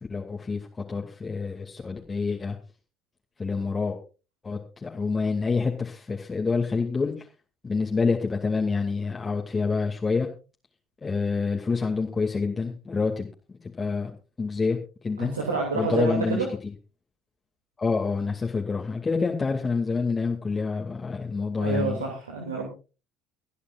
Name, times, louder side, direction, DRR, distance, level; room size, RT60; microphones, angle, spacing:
voice 1, 0.1-0.6 0.9-2.6 3.4-4.0 4.4-7.1 7.6-10.3 11.0-14.8 15.0-15.3 15.7-16.4 17.8-22.0, left 4 dB, 25° left, 0 dB, 2.5 m, -27 dB
voice 2, 15.2-16.5 21.6-22.7, right 4 dB, 90° right, 1 dB, 2.6 m, -28 dB
24.5 x 10.0 x 2.5 m, 0.33 s
hypercardioid pair, 60°, 0 cm